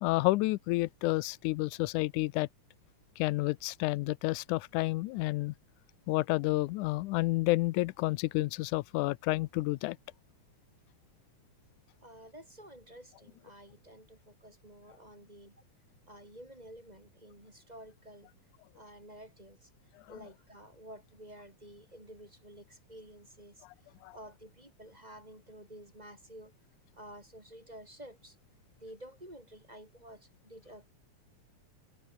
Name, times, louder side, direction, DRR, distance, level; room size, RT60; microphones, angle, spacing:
voice 1, 0.0-2.5 3.2-5.5 6.1-10.0 24.0-24.2, left 20 dB, 90° left, 2.1 m, -30 dB
voice 2, 12.0-15.5 16.1-18.3 18.7-19.7 20.1-26.5 27.0-28.4 28.8-30.9, right 1 dB, 10° right, 5.9 m, -51 dB
omnidirectional pair, 3.4 m